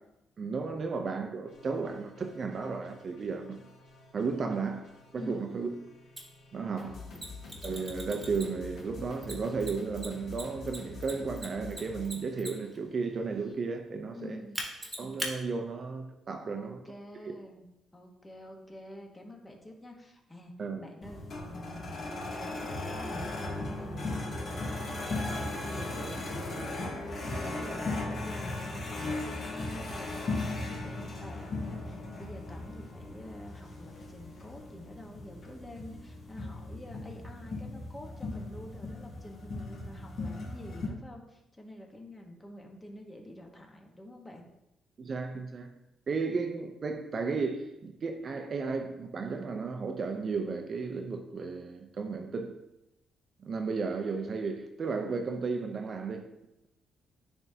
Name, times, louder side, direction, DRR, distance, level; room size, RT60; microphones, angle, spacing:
voice 1, 0.4-3.6 4.1-4.9 5.1-5.7 6.5-6.9 7.6-14.4 15.0-16.8 20.6-20.8 45.0-45.7 46.1-52.5 53.4-56.3, right 4 dB, 45° right, 0.6 m, -34 dB
sound 1, 1.5-13.5, left 4 dB, 80° left, 1.4 m, -48 dB
voice 2, 5.2-5.6 6.7-7.2 14.1-14.6 16.4-17.7 17.9-44.5, left 1 dB, 20° left, 1.2 m, -48 dB
Mechanisms, 6.2-6.3 7.1-8.7 9.2-12.8 14.5-15.3, right 1 dB, 15° right, 1.4 m, -39 dB
sound 2, 21.0-40.9, left 2 dB, 50° left, 1.4 m, -37 dB
9.7 x 3.5 x 2.8 m
cardioid pair, 90°, 0 cm